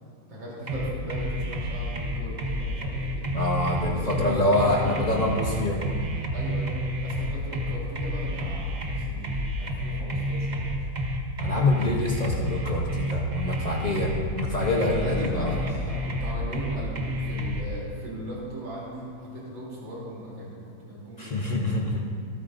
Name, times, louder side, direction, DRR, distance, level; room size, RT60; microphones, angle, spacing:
voice 1, 0.2-3.3 3.8-5.7 6.3-10.9 13.7-14.1 15.0-21.6, equal, 60° right, -6 dB, 3.9 m, -38 dB
sound 1, 0.7-17.6, equal, 45° right, 0.6 m, -29 dB
voice 2, 3.3-5.8 11.4-15.5 21.2-22.0, left 2 dB, 80° left, -1 dB, 0.3 m, -26 dB
26.0 x 9.1 x 2.6 m, 2.3 s
omnidirectional pair, 2.4 m